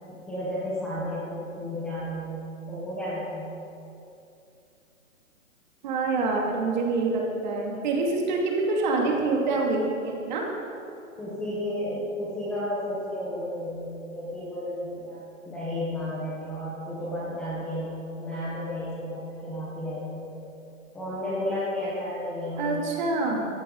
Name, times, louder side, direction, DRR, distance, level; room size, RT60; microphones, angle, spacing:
voice 1, 0.1-2.4 2.7-3.5 11.2-15.2 15.4-20.3 20.9-22.8, left 1 dB, 5° left, -9 dB, 0.9 m, -32 dB
voice 2, 5.8-10.5 22.6-23.5, right 3 dB, 35° right, -1 dB, 2.6 m, -26 dB
19.5 x 14.5 x 3.9 m, 2.7 s
hypercardioid pair, 170°, 41 cm